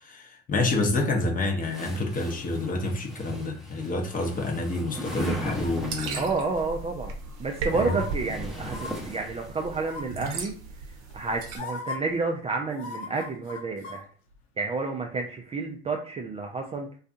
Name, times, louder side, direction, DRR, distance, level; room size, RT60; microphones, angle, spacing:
voice 1, 0.0-6.3 7.7-8.0, left 2 dB, 25° left, 0.7 m, -28 dB
sound 1, 1.6-6.3 7.3-9.8, equal, ahead, 0.7 m, -39 dB
sound 2, 5.4-11.6, right 4 dB, 55° right, 0.7 m, -37 dB
voice 2, 6.1-7.1 7.4-10.5 11.1-14.1 14.6-16.9, right 3 dB, 20° right, 0.3 m, -30 dB
sound 3, 7.7-8.1 8.7-8.9 9.8-10.2 11.1-11.2 11.5-12.0 12.7-14.0 14.3-14.4, left 4 dB, 80° left, 0.7 m, -37 dB
2.6 x 2.3 x 2.5 m
hypercardioid pair, 80°, 32 cm